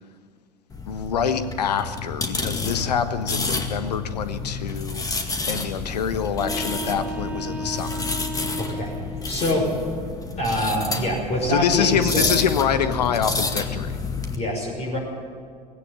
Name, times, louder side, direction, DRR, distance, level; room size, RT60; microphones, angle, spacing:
sound 1, 0.7-14.4, left 3 dB, 15° left, 2.1 m, -30 dB
voice 1, 0.9-8.0 11.5-14.0, left 7 dB, 70° left, 11 dB, 1.3 m, -25 dB
sound 2, 6.3-9.3, right 1 dB, 5° right, 1.3 m, -34 dB
voice 2, 8.6-8.9 9.3-9.7 10.4-12.3 14.3-15.0, left 1 dB, 30° left, -3 dB, 6.0 m, -25 dB
18.5 x 16.5 x 9.1 m, 2.1 s
figure-of-eight pair, 75°, 21 cm